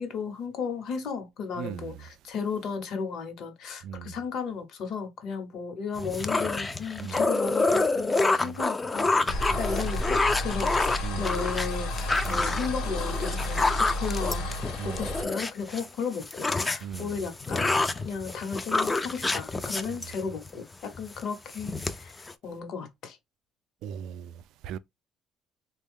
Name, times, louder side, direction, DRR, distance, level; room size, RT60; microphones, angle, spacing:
voice 1, 0.0-9.1 9.6-11.9 12.3-14.5 14.8-17.8 18.0-23.2, left 5 dB, 60° left, 1.0 m, -34 dB
voice 2, 1.6-2.0 3.8-4.1 7.0-7.2 8.4-8.6 9.5-9.6 10.5-10.6 11.0-11.3 12.3-12.6 14.8-15.1 16.8-17.2 19.9-20.0 23.8-24.3 24.6-24.8, right 9 dB, 70° right, 0.3 m, -38 dB
sound 1, 6.0-15.8 16.1-20.5 21.0-21.2 21.5-22.3, left 3 dB, 15° left, 0.3 m, -28 dB
sound 2, 9.3-15.2, left 1 dB, 75° left, 1.1 m, -31 dB
3.5 x 2.2 x 3.5 m
cardioid pair, 140°, 0 cm